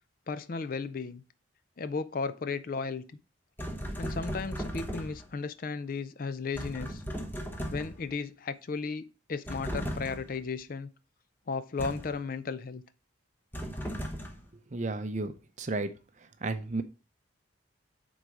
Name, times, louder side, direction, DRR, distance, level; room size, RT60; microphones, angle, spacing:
voice 1, 0.3-1.2 1.8-3.0 4.0-7.0 7.7-9.0 9.3-10.9 11.5-12.8, left 4 dB, 45° left, 0.4 m, -35 dB
sound 1, 3.6-5.4 6.6-8.1 9.5-10.4 11.8-12.2 13.5-14.5, equal, 10° left, 0.9 m, -37 dB
voice 2, 14.7-15.3 15.6-15.9 16.4-16.8, right 3 dB, 40° right, 0.6 m, -32 dB
7.7 x 4.0 x 4.8 m
head